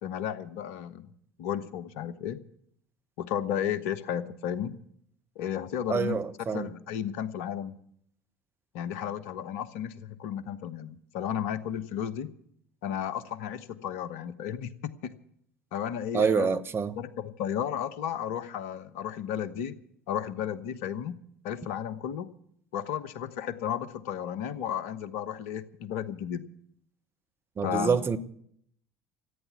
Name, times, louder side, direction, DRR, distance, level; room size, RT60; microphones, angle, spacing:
voice 1, 0.0-1.1 1.4-2.4 3.2-4.8 5.3-6.2 6.5-7.8 8.7-12.3 12.8-15.2 15.7-16.5 16.9-19.8 20.1-21.2 21.4-22.3 22.7-26.4 27.6-28.1, left 9 dB, 65° left, 1.0 m, -33 dB
voice 2, 5.9-6.7 16.1-17.0 27.6-28.2, right 6 dB, 30° right, 1.1 m, -26 dB
14.5 x 9.2 x 9.5 m
figure-of-eight pair, 65°, 8 cm